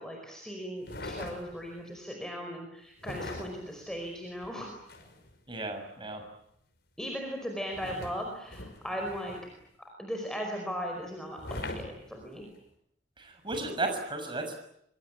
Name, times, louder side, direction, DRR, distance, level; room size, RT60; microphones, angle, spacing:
voice 1, 0.0-4.7 7.0-9.4 10.0-12.5, equal, 5° left, 2 dB, 5.0 m, -38 dB
sound 1, 0.8-1.8 3.0-5.4 7.7-9.6 11.4-12.6 13.5-13.7, left 2 dB, 60° left, 5.8 m, -42 dB
voice 2, 5.5-6.2 13.2-14.6, right 2 dB, 25° right, 5 dB, 6.5 m, -34 dB
25.5 x 25.0 x 8.8 m, 0.75 s
head